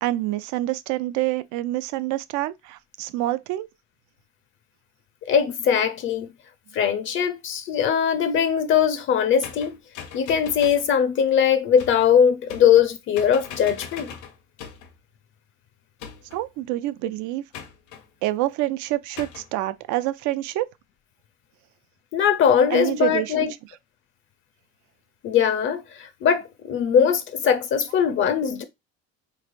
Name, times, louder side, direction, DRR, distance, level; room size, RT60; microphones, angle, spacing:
voice 1, 0.0-3.7 16.3-17.4 18.2-20.7 22.7-23.3, right 16 dB, 80° right, 0.5 m, -27 dB
voice 2, 5.2-6.3 6.7-9.8 10.1-14.1 22.1-23.5 25.2-28.6, left 8 dB, 45° left, 0.4 m, -21 dB
sound 1, 9.4-10.9 11.8-12.1 12.5-12.9 13.1-14.9 16.0-16.5 17.5-18.0 19.2-19.5, left 7 dB, 90° left, 1.0 m, -40 dB
4.2 x 3.2 x 2.4 m
cardioid pair, 170°, 29 cm